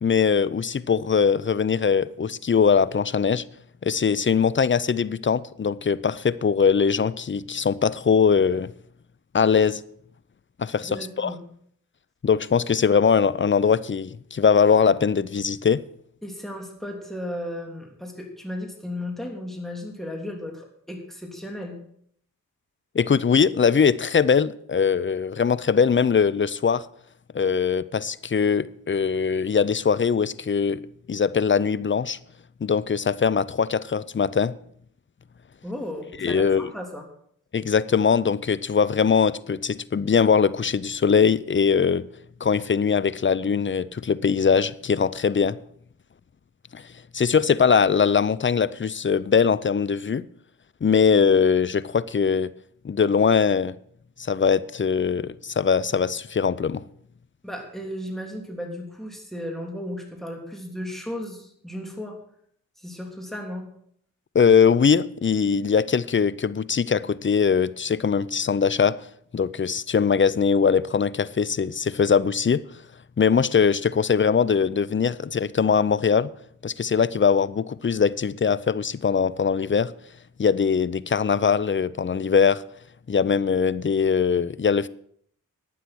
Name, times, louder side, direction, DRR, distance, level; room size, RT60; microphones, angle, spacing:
voice 1, 0.0-3.4 3.8-8.7 9.3-9.8 10.6-11.4 12.2-15.8 22.9-26.8 27.3-30.8 31.1-32.2 32.6-34.5 36.2-36.7 37.5-42.0 42.4-45.6 46.7-46.8 47.1-50.2 50.8-52.5 52.8-53.8 54.2-56.8 64.3-69.0 69.3-72.6 73.2-76.3 76.6-79.9 80.4-82.6 83.1-84.9, left 6 dB, 35° left, 0.6 m, -21 dB
voice 2, 10.8-11.4 16.2-21.8 35.6-37.1 57.4-62.2 62.8-63.7, left 1 dB, ahead, 3.2 m, -35 dB
12.0 x 9.3 x 6.2 m
cardioid pair, 55°, 33 cm